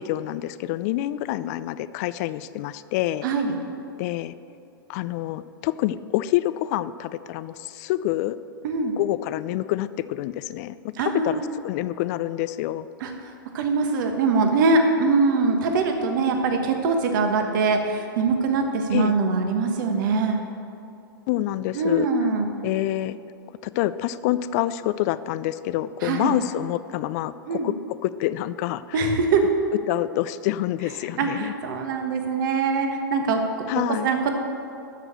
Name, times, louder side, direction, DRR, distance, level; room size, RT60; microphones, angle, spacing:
voice 1, 0.0-3.3 4.0-4.3 4.9-8.4 9.0-12.9 18.9-19.2 21.3-22.1 22.6-23.2 23.6-27.7 28.0-29.0 29.9-31.5 33.7-34.1, left 14 dB, 45° left, 15 dB, 0.4 m, -27 dB
voice 2, 3.2-3.6 8.6-8.9 11.0-11.5 13.0-13.1 13.5-20.4 21.7-22.5 26.0-26.4 27.5-27.7 28.9-29.5 31.2-33.7 34.0-34.3, right 3 dB, 60° right, 4 dB, 1.3 m, -23 dB
12.5 x 4.9 x 6.6 m, 2.6 s
hypercardioid pair, 110°, 12 cm